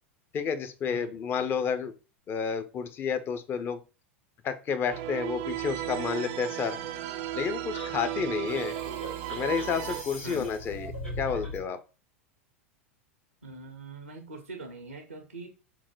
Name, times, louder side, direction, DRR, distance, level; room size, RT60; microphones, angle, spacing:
voice 1, 0.3-1.9 2.3-3.8 4.4-6.8 7.3-8.7 9.3-10.9 11.2-11.8, left 6 dB, 30° left, 0.6 m, -30 dB
sound 1, 4.9-10.0, right 12 dB, 50° right, 0.5 m, -35 dB
sound 2, 7.7-11.7, equal, 80° left, 2.1 m, -40 dB
voice 2, 8.1-8.5 10.2-10.6 13.4-15.5, right 2 dB, 90° right, 0.7 m, -43 dB
3.7 x 2.1 x 4.5 m
figure-of-eight pair, 85°, 7 cm